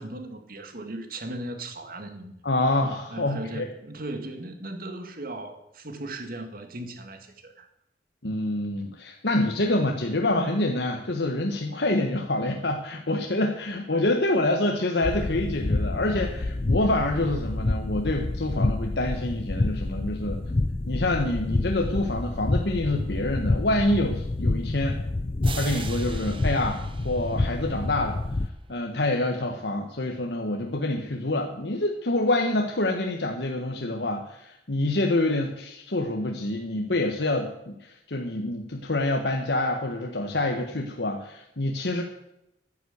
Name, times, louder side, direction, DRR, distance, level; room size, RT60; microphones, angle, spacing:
voice 1, 0.0-2.5 3.1-7.7, right 1 dB, 55° right, 6 dB, 1.9 m, -37 dB
voice 2, 2.4-3.7 8.2-20.4 20.8-25.0 25.5-28.2 28.7-42.0, left 2 dB, 70° left, 3 dB, 1.3 m, -26 dB
sound 1, 15.0-28.5, left 2 dB, 35° left, 0.5 m, -28 dB
sound 2, 25.4-28.1, right 5 dB, 30° right, 1.1 m, -41 dB
11.5 x 9.7 x 8.1 m, 0.84 s
head